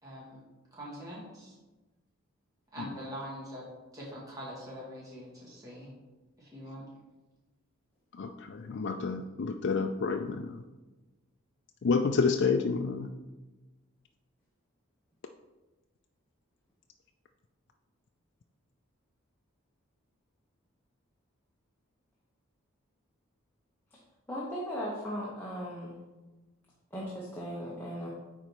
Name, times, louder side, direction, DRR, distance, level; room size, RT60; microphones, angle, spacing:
voice 1, 0.0-0.4 0.7-1.6 2.7-3.6 3.9-5.9 6.4-6.8, equal, 15° right, -7 dB, 2.1 m, -43 dB
voice 2, 8.1-10.6 11.8-13.1, left 4 dB, 55° left, 5 dB, 0.4 m, -29 dB
voice 3, 24.3-26.0 26.9-28.1, equal, 10° left, -6 dB, 1.0 m, -37 dB
9.0 x 4.2 x 4.6 m, 1.2 s
head